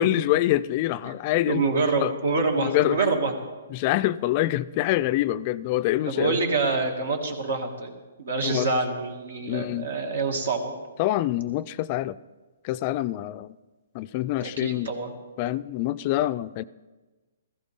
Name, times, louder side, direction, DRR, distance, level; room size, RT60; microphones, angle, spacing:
voice 1, 0.0-2.1 2.6-3.1 3.7-6.4 8.4-8.7 9.5-9.9 11.0-12.2 12.6-13.5 13.9-14.9 15.4-16.6, left 15 dB, 35° left, 15 dB, 0.3 m, -25 dB
voice 2, 1.5-3.3 6.1-7.9 8.2-10.7 14.4-15.1, right 3 dB, 75° right, 3 dB, 2.4 m, -26 dB
16.0 x 14.5 x 3.7 m, 1.2 s
hypercardioid pair, 135°, 0 cm